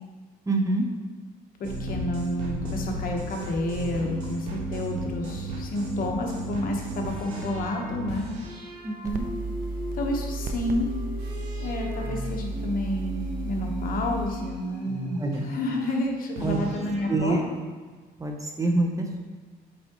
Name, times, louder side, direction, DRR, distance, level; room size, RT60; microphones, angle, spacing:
voice 1, 0.5-0.8 8.8-9.3 15.2-15.5 16.4-16.6 17.1-17.4 18.2-19.2, right 2 dB, 20° right, 2 dB, 0.8 m, -26 dB
voice 2, 1.6-8.3 9.9-10.9 11.6-17.4, left 1 dB, 55° left, 1 dB, 1.1 m, -30 dB
sound 1, 1.6-15.9 16.4-17.4, equal, 90° right, 1.5 m, -36 dB
sound 2, 9.0-14.3, right 2 dB, 55° right, 0.7 m, -33 dB
8.4 x 4.7 x 3.0 m, 1.4 s
cardioid pair, 110°, 17 cm